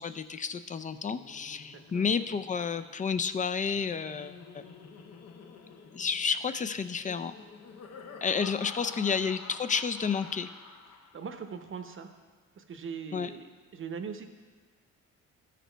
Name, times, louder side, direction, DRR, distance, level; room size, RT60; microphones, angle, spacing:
voice 1, 0.0-4.6 5.9-7.3 8.2-10.5 13.1-13.3, left 6 dB, 25° left, 12 dB, 0.4 m, -31 dB
Laughter, 1.0-11.5, left 5 dB, 55° left, 0.9 m, -50 dB
voice 2, 1.7-2.1 8.9-9.0 11.1-12.1 12.5-14.3, right 6 dB, 45° right, 7 dB, 0.8 m, -41 dB
13.0 x 5.0 x 4.5 m, 1.5 s
cardioid pair, 90°, 30 cm